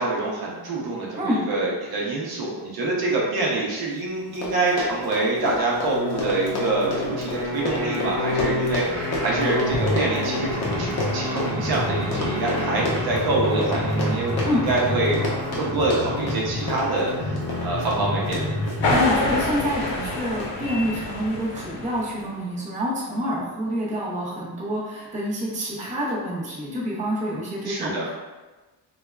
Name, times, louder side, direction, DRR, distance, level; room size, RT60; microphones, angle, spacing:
voice 1, 0.0-14.3 14.7-15.2 15.5-18.4 27.6-28.1, right 2 dB, 55° right, -4 dB, 0.7 m, -26 dB
Run, 4.0-4.1 4.3-19.2 19.8-20.1 20.4-20.5, left 2 dB, 35° left, 0.6 m, -31 dB
sound 1, 5.7-19.1, left 1 dB, 10° left, 1.0 m, -28 dB
voice 2, 18.6-28.1, equal, 15° right, -6 dB, 0.5 m, -27 dB
sound 2, 18.8-22.3, left 2 dB, 85° left, 0.8 m, -26 dB
3.3 x 2.2 x 2.2 m, 1.2 s
wide cardioid pair, 135°, 44 cm